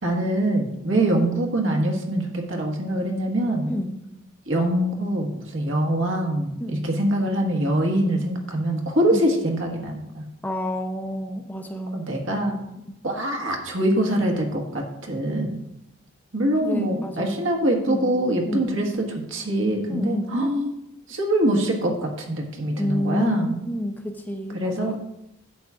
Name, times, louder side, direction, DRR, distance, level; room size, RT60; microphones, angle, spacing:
voice 1, 0.0-3.7 4.5-10.2 11.9-12.6 13.0-15.6 16.3-20.7 21.1-23.6 24.5-24.9, right 1 dB, 65° right, 1 dB, 1.5 m, -24 dB
voice 2, 10.4-12.1 12.9-13.0 16.6-17.4 17.9-18.1 18.5-18.8 19.9-20.4 22.8-25.0, left 1 dB, 10° left, 3 dB, 0.6 m, -29 dB
11.0 x 8.2 x 2.5 m, 0.86 s
head